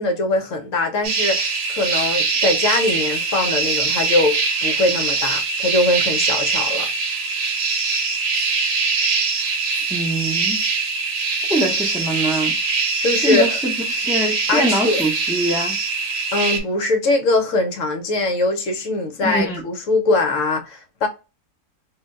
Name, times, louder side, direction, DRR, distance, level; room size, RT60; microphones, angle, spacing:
voice 1, 0.0-6.9 13.0-13.6 14.5-15.0 16.3-21.1, left 2 dB, 65° left, 0.9 m, -21 dB
sound 1, 1.0-16.6, right 4 dB, 65° right, 1.1 m, -22 dB
voice 2, 9.9-10.6 11.5-12.5 13.2-15.8 19.2-19.6, equal, 5° right, 0.3 m, -23 dB
2.6 x 2.1 x 3.6 m
omnidirectional pair, 1.6 m